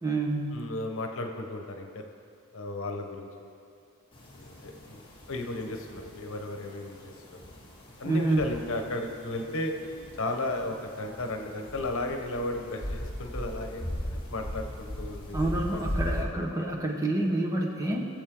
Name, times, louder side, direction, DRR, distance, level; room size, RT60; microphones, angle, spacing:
voice 1, 0.0-0.6 8.0-8.4 15.3-18.1, right 2 dB, 15° right, -1 dB, 1.3 m, -28 dB
voice 2, 0.5-2.0 2.5-3.6 4.3-5.0 5.3-7.1 8.0-13.8 14.3-16.5, left 2 dB, 65° left, 4 dB, 1.1 m, -35 dB
sound 1, 4.1-16.2, left 1 dB, 25° left, 2.1 m, -38 dB
22.0 x 7.4 x 3.9 m, 2.5 s
head